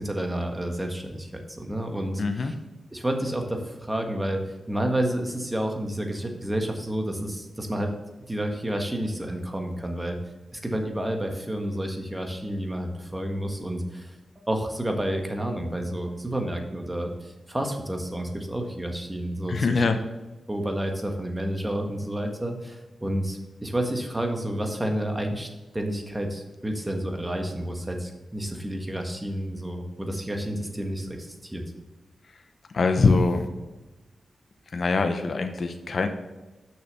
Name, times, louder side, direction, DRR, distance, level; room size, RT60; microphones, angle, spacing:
voice 1, 0.0-2.5 2.9-4.4 4.7-7.9 8.3-10.2 10.5-19.8 20.5-25.5 25.7-31.6, right 1 dB, 15° right, 3 dB, 1.5 m, -30 dB
voice 2, 2.2-2.5 19.5-20.0 32.7-33.5 34.7-36.1, left 4 dB, 60° left, 7 dB, 0.7 m, -23 dB
6.5 x 6.2 x 5.4 m, 1.1 s
cardioid pair, 60°, 0 cm